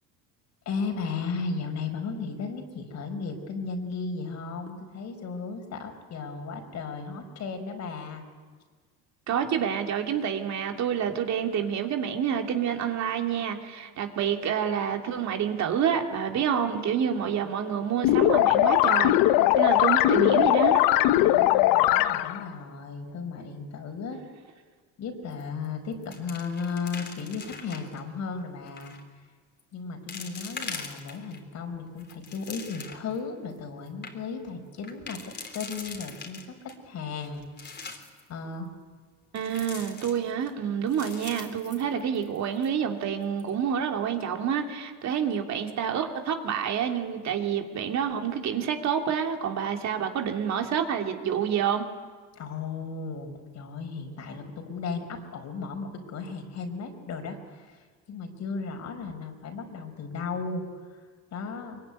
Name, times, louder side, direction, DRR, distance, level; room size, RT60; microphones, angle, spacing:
voice 1, 0.6-8.2 21.1-24.2 25.0-29.0 29.7-35.2 35.5-37.8 38.3-38.7 52.3-61.8, left 4 dB, 50° left, 6 dB, 4.8 m, -35 dB
voice 2, 9.3-19.2 19.5-20.8 39.3-51.8, right 8 dB, 50° right, 3 dB, 2.9 m, -28 dB
sound 1, 18.0-22.4, left 14 dB, 70° left, 1.1 m, -20 dB
sound 2, 25.3-25.7 25.9-28.0 28.7-29.0 29.6-29.7 30.1-31.4 31.9-33.2 33.6-33.7 33.9-34.1 34.8-36.7 37.2-38.2 39.4-40.5 40.9-42.4 42.6-42.7 43.2-43.5, left 5 dB, 30° left, 3.7 m, -42 dB
23.5 x 23.0 x 9.8 m, 1.5 s
cardioid pair, 120°, 36 cm